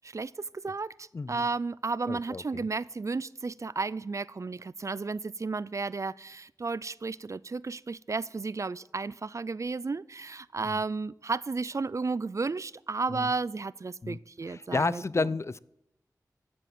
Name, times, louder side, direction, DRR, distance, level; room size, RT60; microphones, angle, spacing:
voice 1, 0.0-15.3, right 4 dB, 50° right, 21 dB, 0.4 m, -33 dB
voice 2, 1.1-1.5 2.1-2.7 10.6-10.8 13.1-13.3 14.0-14.2 14.4-15.6, left 3 dB, 40° left, 20 dB, 0.4 m, -31 dB
14.5 x 7.6 x 7.6 m, 0.82 s
wide cardioid pair, 60°, 7 cm